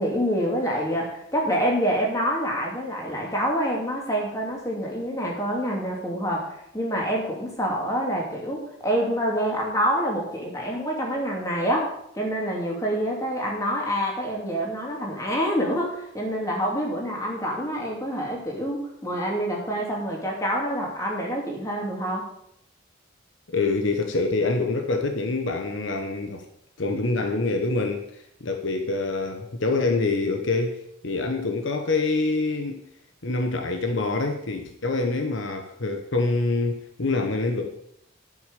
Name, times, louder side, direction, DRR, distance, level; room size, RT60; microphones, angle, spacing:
voice 1, 0.0-22.3, equal, 15° left, 2.8 m, -27 dB
voice 2, 23.5-26.5 26.8-32.8 33.2-37.7, left 3 dB, 70° left, 1.1 m, -26 dB
11.0 x 6.4 x 6.8 m
head